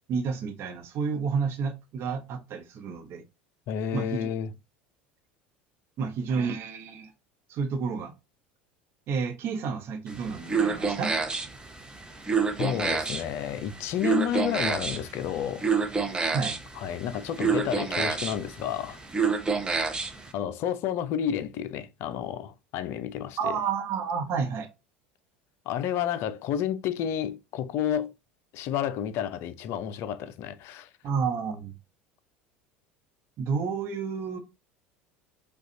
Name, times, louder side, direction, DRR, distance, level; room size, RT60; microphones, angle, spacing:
voice 1, 0.1-3.2 3.9-4.3 6.0-7.1 7.5-8.1 9.1-11.2 16.3-16.6 23.4-24.7 31.0-31.7 33.4-34.4, right 5 dB, 45° right, 0.8 m, -30 dB
voice 2, 3.7-4.5 12.6-15.6 16.8-19.0 20.3-23.6 25.7-28.1 28.5-30.9, left 9 dB, 50° left, 0.4 m, -30 dB
sound 1, 10.1-20.3, right 5 dB, 15° right, 0.7 m, -29 dB
4.9 x 2.3 x 2.7 m
figure-of-eight pair, 70°, 6 cm